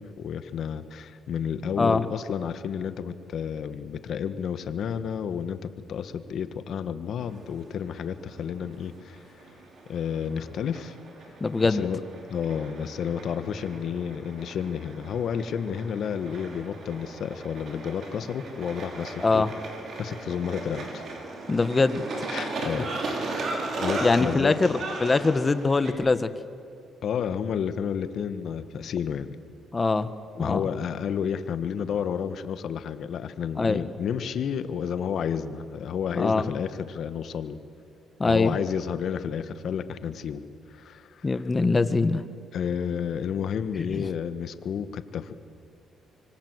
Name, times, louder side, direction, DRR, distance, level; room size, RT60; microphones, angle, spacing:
voice 1, 0.0-9.2 9.9-11.0 11.6-12.0 12.3-19.5 20.0-21.0 22.3-23.4 23.8-24.6 27.0-29.3 30.3-37.6 38.3-40.4 40.7-41.3 42.5-45.3, left 7 dB, 65° left, 11 dB, 1.6 m, -31 dB
sound 1, 7.2-25.9, right 2 dB, 60° right, 5.7 m, -37 dB
voice 2, 11.4-11.8 19.2-19.5 21.5-22.1 24.0-26.3 29.7-30.1 30.4-30.6 33.6-33.8 36.1-36.4 38.2-38.6 41.2-42.2 43.9-44.1, left 3 dB, 25° left, 12 dB, 1.5 m, -23 dB
25.5 x 25.0 x 8.1 m, 2.5 s
cardioid pair, 90°, 0 cm